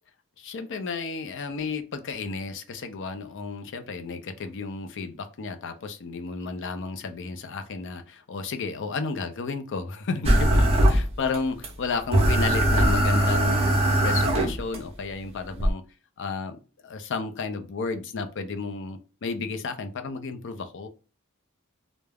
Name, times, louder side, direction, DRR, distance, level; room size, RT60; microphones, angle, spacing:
voice 1, 0.4-15.8 16.2-20.9, left 4 dB, 60° left, 8 dB, 0.5 m, -32 dB
sound 1, 10.2-11.4 11.6-11.7 12.1-14.8 15.6-15.7, right 1 dB, 30° right, 0.6 m, -20 dB
2.3 x 2.0 x 3.3 m, 0.33 s
head